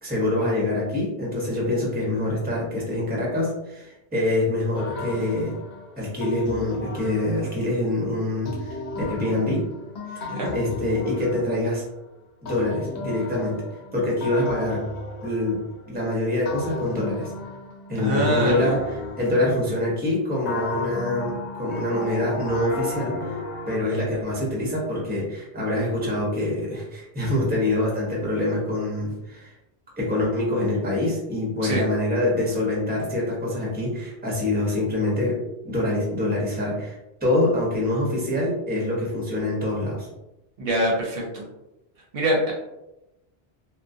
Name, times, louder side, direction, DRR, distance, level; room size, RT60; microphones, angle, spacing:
voice 1, 0.0-5.6 6.0-8.8 9.1-9.7 10.1-11.8 12.4-13.6 13.9-14.8 15.2-17.3 17.9-18.8 19.2-23.4 23.7-29.5 30.0-40.1, left 1 dB, 10° right, -4 dB, 0.6 m, -25 dB
sound 1, 4.7-7.8 8.4-12.0 12.4-16.0 16.4-19.9 20.4-23.8, left 3 dB, 85° left, 0.8 m, -35 dB
voice 2, 18.0-18.7 31.6-31.9 40.6-41.5 42.1-42.5, equal, 65° right, -2 dB, 0.7 m, -24 dB
2.3 x 2.1 x 2.5 m, 0.94 s
omnidirectional pair, 1.1 m